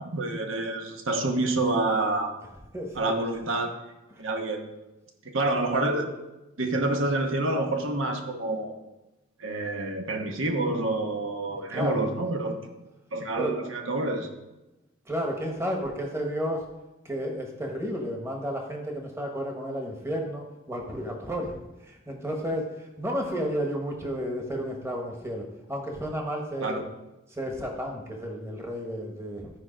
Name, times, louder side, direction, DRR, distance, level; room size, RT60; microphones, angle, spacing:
voice 1, 0.0-2.3 3.0-3.7 4.2-4.8 5.2-6.1 6.6-8.8 9.4-12.7 13.1-14.3 26.6-26.8, right 2 dB, 80° right, 4 dB, 1.1 m, -28 dB
voice 2, 2.7-3.1 4.1-4.2 11.5-12.1 13.4-13.5 15.0-16.7 17.0-21.5 21.8-26.8 27.3-29.5, equal, 15° right, 1 dB, 1.2 m, -32 dB
13.0 x 4.7 x 5.1 m, 1.0 s
head